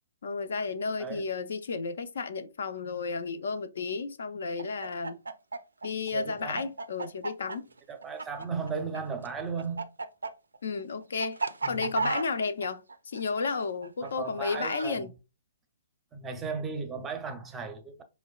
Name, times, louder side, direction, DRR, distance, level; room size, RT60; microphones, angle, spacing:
voice 1, 0.2-5.2 5.8-7.7 10.6-11.4 11.7-15.1, left 4 dB, 65° left, 0.5 m, -32 dB
Chicken rooster, 4.6-9.0 9.2-14.9, right 4 dB, 85° right, 0.3 m, -34 dB
voice 2, 6.1-6.7 7.9-9.9 11.6-12.1 14.0-15.1 16.1-18.0, right 5 dB, 15° right, 0.6 m, -36 dB
4.6 x 2.1 x 2.3 m
hypercardioid pair, 130°, 0 cm